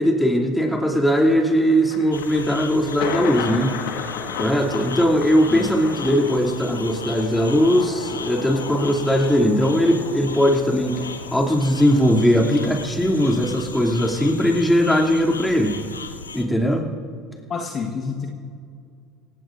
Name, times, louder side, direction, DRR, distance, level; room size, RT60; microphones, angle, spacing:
voice 1, 0.0-3.8 4.4-11.0 11.3-15.7 16.3-16.9, equal, 5° left, 0 dB, 2.9 m, -19 dB
Thunder, 1.1-13.4, left 7 dB, 65° left, 1.6 m, -35 dB
sound 1, 2.1-16.4, left 4 dB, 85° left, 0.7 m, -37 dB
voice 2, 17.5-18.3, left 5 dB, 40° left, 1 dB, 1.5 m, -29 dB
26.5 x 16.5 x 2.7 m, 2.3 s
figure-of-eight pair, 65°, 0 cm